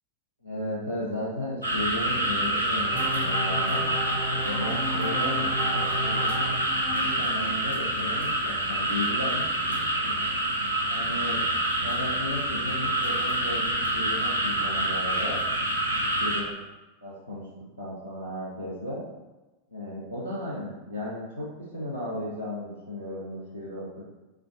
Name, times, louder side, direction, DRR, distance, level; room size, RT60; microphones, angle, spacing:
voice 1, 0.4-3.9 4.3-6.5 6.8-10.1 10.9-11.5 11.8-15.4 16.0-16.5 17.0-17.5 17.8-19.0 19.7-21.5 21.7-24.0, left 1 dB, 85° left, -6 dB, 0.8 m, -35 dB
sound 1, 1.6-16.4, right 1 dB, 80° right, 0.5 m, -27 dB
sound 2, 2.9-8.3, equal, 45° left, 1.1 m, -34 dB
4.0 x 3.6 x 2.3 m, 1.1 s
figure-of-eight pair, 90°, 0 cm